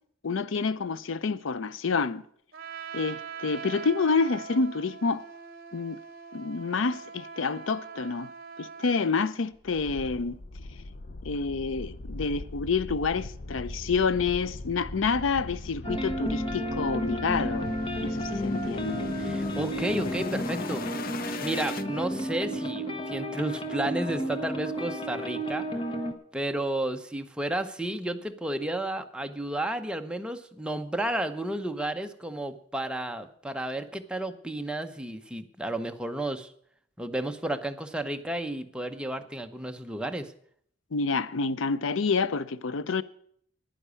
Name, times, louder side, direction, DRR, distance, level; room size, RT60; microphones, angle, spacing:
voice 1, 0.2-2.2 2.9-5.2 5.7-6.0 6.3-8.3 8.6-10.4 11.2-17.7 18.0-19.1 40.9-43.0, left 4 dB, 90° left, 0.6 m, -28 dB
Trumpet, 2.5-9.2, right 6 dB, 55° right, 1.1 m, -42 dB
sound 1, 9.6-21.8, left 3 dB, 50° left, 0.6 m, -39 dB
sound 2, 15.8-26.1, equal, 25° left, 1.4 m, -32 dB
voice 2, 19.2-20.8 21.4-25.8 26.3-36.5 37.0-40.3, right 1 dB, 5° right, 0.8 m, -32 dB
10.0 x 10.0 x 8.2 m
head